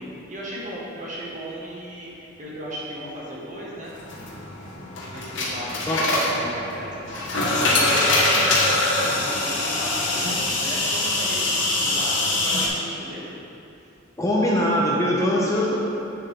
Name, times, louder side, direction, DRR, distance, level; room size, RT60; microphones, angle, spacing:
voice 1, 0.0-3.9 5.1-13.4, equal, 40° right, -5 dB, 1.5 m, -36 dB
sound 1, 3.9-12.7, left 2 dB, 65° left, 1.3 m, -23 dB
voice 2, 14.2-15.8, equal, 15° left, -5 dB, 0.8 m, -22 dB
7.9 x 6.8 x 3.4 m, 2.7 s
head